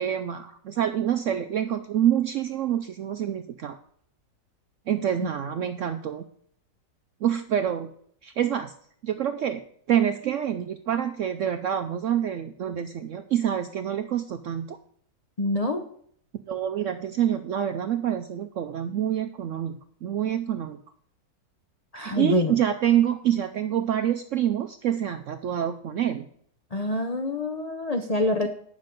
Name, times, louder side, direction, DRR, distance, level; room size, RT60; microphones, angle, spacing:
voice 1, 0.0-3.8 4.9-6.2 7.2-7.9 8.2-8.7 9.0-9.6 9.9-14.8 16.5-20.8 22.0-26.2, right 10 dB, 75° right, 8 dB, 0.7 m, -26 dB
voice 2, 15.4-15.9 21.9-22.5 26.7-28.5, left 2 dB, 65° left, 5 dB, 0.3 m, -26 dB
9.7 x 6.4 x 5.2 m, 0.64 s
omnidirectional pair, 1.8 m